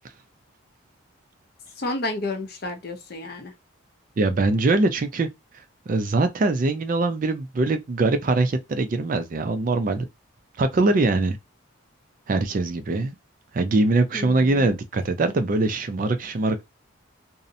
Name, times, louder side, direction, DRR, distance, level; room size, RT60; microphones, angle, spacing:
voice 1, 1.8-3.5 14.1-14.7, left 2 dB, 50° left, 0.5 m, -31 dB
voice 2, 4.2-5.3 5.9-10.0 10.6-11.4 12.3-13.2 13.5-16.6, right 2 dB, 40° right, 0.3 m, -22 dB
2.7 x 2.0 x 2.6 m
head